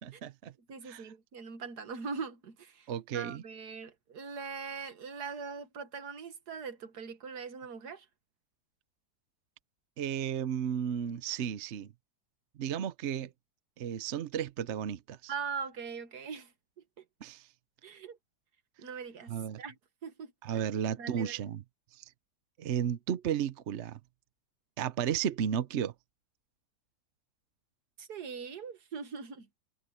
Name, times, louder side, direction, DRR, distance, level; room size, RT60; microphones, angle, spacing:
voice 1, 0.0-0.5 0.8-1.0 2.9-3.4 10.0-11.9 12.6-13.3 13.8-15.3 17.2-17.5 19.3-19.6 20.4-21.6 21.9-22.0 22.6-24.0 24.8-25.9, right 9 dB, 55° right, 0.9 m, -33 dB
voice 2, 0.7-8.1 15.3-16.5 17.0-17.1 17.8-18.2 18.8-19.8 20.0-20.7 21.0-21.5 28.0-29.5, right 5 dB, 70° right, 2.0 m, -41 dB
omnidirectional pair, 1.8 m